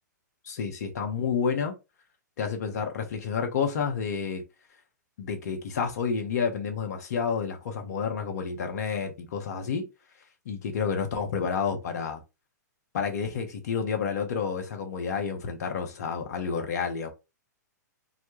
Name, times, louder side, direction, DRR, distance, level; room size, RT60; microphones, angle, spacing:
voice 1, 0.4-1.8 2.4-4.4 5.2-9.9 10.5-12.2 12.9-17.1, left 6 dB, 60° left, 0.7 m, -30 dB
2.1 x 2.0 x 3.0 m
hypercardioid pair, 115°, 10 cm